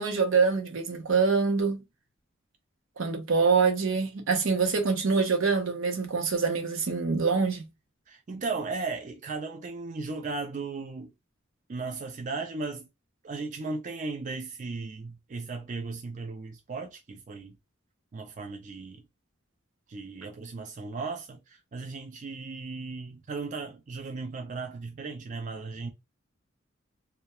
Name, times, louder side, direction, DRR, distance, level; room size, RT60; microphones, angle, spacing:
voice 1, 0.0-1.8 3.0-7.6, right 4 dB, 75° right, 0.7 m, -25 dB
voice 2, 8.1-11.1 11.7-12.9 13.2-17.6 18.1-19.0 19.9-25.9, right 3 dB, 40° right, 0.4 m, -36 dB
2.2 x 2.1 x 2.8 m
head